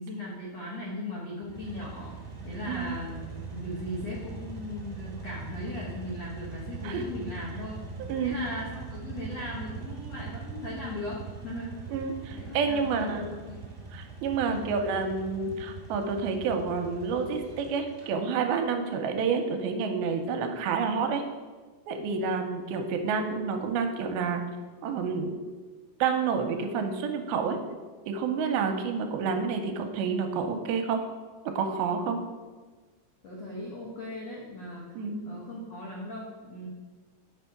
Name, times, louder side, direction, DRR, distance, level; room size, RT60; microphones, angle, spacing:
voice 1, 0.0-2.1 2.4-7.8 8.2-11.7 12.3-13.6 14.4-14.8 33.2-34.9 35.2-36.7, left 1 dB, 70° left, -5 dB, 1.5 m, -38 dB
sound 1, 1.4-18.1, right 4 dB, 65° right, 0.5 m, -42 dB
voice 2, 11.9-13.3 13.9-21.2 21.9-24.4 24.8-25.3 26.0-27.6 28.1-31.0 31.6-32.2 35.0-35.2, right 5 dB, 85° right, 5 dB, 2.5 m, -29 dB
8.0 x 4.5 x 5.7 m, 1.4 s
omnidirectional pair, 4.4 m